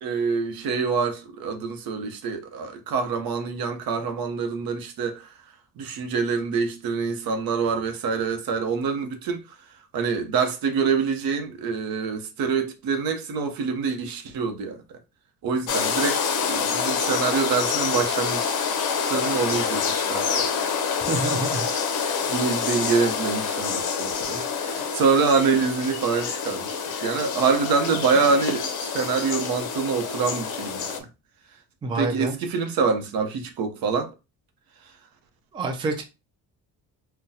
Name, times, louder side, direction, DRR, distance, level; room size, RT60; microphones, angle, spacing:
voice 1, 0.0-5.2 5.8-9.4 9.9-14.8 15.4-18.5 19.1-20.5 22.0-30.9 32.0-34.1, right 5 dB, 80° right, 0.8 m, -25 dB
sound 1, 15.7-31.0, left 6 dB, 60° left, 0.7 m, -27 dB
voice 2, 21.1-21.7 22.1-22.2 31.8-32.4 35.5-36.0, right 2 dB, 15° right, 0.3 m, -27 dB
3.8 x 2.2 x 2.7 m
cardioid pair, 180°, 35 cm